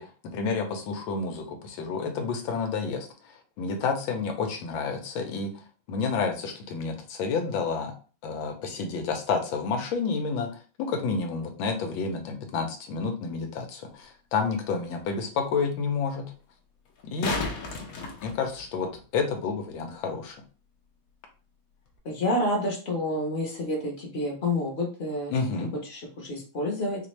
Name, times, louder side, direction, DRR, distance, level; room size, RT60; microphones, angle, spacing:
voice 1, 0.0-3.1 3.6-5.5 5.9-7.9 8.2-10.5 10.8-16.3 17.0-17.4 17.8-20.4 25.3-25.7, left 5 dB, 90° left, 5 dB, 1.5 m, -30 dB
sound 1, 14.0-14.1 16.9-19.0 21.9-22.0, left 4 dB, 60° left, 1.0 m, -33 dB
voice 2, 22.0-25.3 25.9-27.1, left 1 dB, 40° left, -1 dB, 1.1 m, -29 dB
4.3 x 2.5 x 3.1 m, 0.37 s
omnidirectional pair, 2.1 m